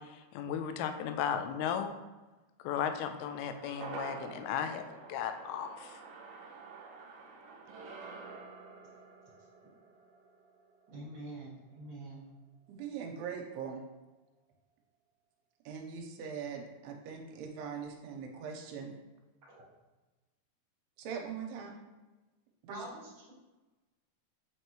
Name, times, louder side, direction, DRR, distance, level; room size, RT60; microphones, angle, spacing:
voice 1, 0.3-1.9 2.6-4.8 5.1-5.9, left 8 dB, 80° left, 7 dB, 2.4 m, -35 dB
sound 1, 3.1-11.6 11.9-12.0, right 4 dB, 75° right, 2.4 m, -49 dB
voice 2, 10.9-12.2 19.5-19.7 22.7-23.3, right 1 dB, 50° right, -6 dB, 1.6 m, -45 dB
voice 3, 12.7-13.8 15.7-18.9 21.0-21.8 22.6-22.9, right 6 dB, 90° right, 1 dB, 2.7 m, -41 dB
7.9 x 4.5 x 2.9 m, 1.1 s
omnidirectional pair, 4.6 m